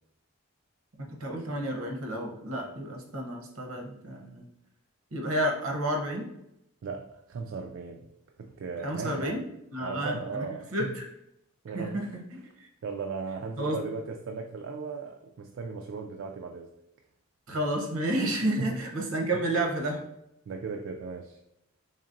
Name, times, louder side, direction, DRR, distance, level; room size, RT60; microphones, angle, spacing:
voice 1, 1.0-4.5 5.1-6.3 8.8-9.4 9.7-10.4 10.7-11.1 11.7-12.2 12.6-12.7 13.6-13.8 17.5-20.0, right 1 dB, 75° right, 2 dB, 0.9 m, -31 dB
voice 2, 6.8-8.1 8.4-9.4 9.8-11.0 11.6-12.1 12.8-16.7 18.6-18.8 20.5-21.4, right 4 dB, 60° right, 2 dB, 0.3 m, -37 dB
4.0 x 3.5 x 2.6 m, 0.80 s
head